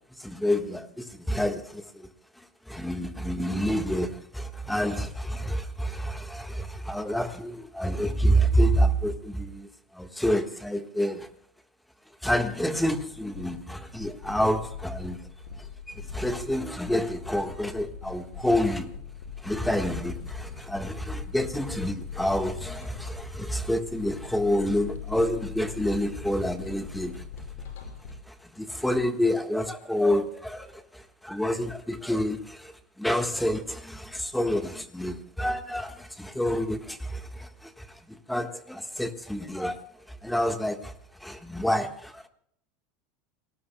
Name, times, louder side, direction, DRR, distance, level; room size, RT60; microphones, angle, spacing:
voice 1, 0.0-2.1 2.7-9.7 9.9-11.3 12.2-15.3 15.9-18.9 19.4-27.2 28.3-32.7 33.0-39.8 40.2-40.9 41.2-42.3, equal, 5° left, 7 dB, 1.5 m, -28 dB
sound 1, 12.8-28.1, left 6 dB, 85° left, 5.3 m, -41 dB
29.0 x 19.0 x 2.3 m, 0.69 s
supercardioid pair, 120°, 0 cm